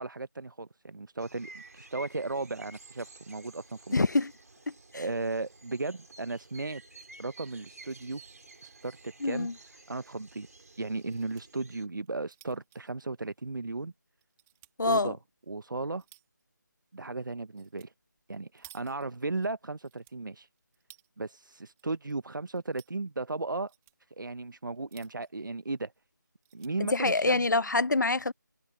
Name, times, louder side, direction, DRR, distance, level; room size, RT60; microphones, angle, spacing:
voice 1, 0.0-4.0 4.9-6.8 7.2-8.2 8.6-9.5 9.9-10.5 10.8-13.9 14.8-15.2 15.5-16.0 16.9-17.9 18.3-20.5 21.2-23.7 24.1-25.9 26.5-27.5, right 3 dB, 85° right, 0.9 m, -35 dB
sound 1, 1.2-11.9, right 2 dB, 55° right, 2.7 m, -52 dB
voice 2, 3.9-4.3 4.9-5.0 9.2-9.5 14.8-15.1 26.9-28.3, left 3 dB, 65° left, 0.9 m, -25 dB
sound 2, 8.5-9.0 9.3-9.4 9.7-9.8 10.8-11.4 12.0-13.8 14.2-14.7 15.4-16.4 17.6-17.9 18.2-19.5 19.8-21.1 21.5-22.1 22.4-23.0 23.5-24.0 24.7-25.4 25.9-26.0 26.2-26.7 27.4-27.8, right 17 dB, 5° right, 1.5 m, -58 dB
figure-of-eight pair, 175°, 10 cm